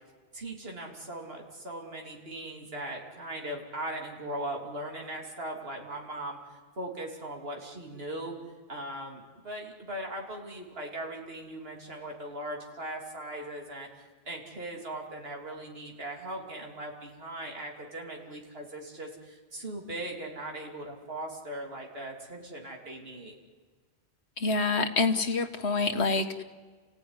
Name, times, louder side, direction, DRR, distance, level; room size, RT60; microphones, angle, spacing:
voice 1, 0.3-8.3 8.7-23.4, right 1 dB, 65° right, 0 dB, 3.3 m, -39 dB
voice 2, 24.4-26.4, left 3 dB, 85° left, 6 dB, 1.8 m, -27 dB
29.5 x 16.5 x 9.9 m, 1.5 s
omnidirectional pair, 1.1 m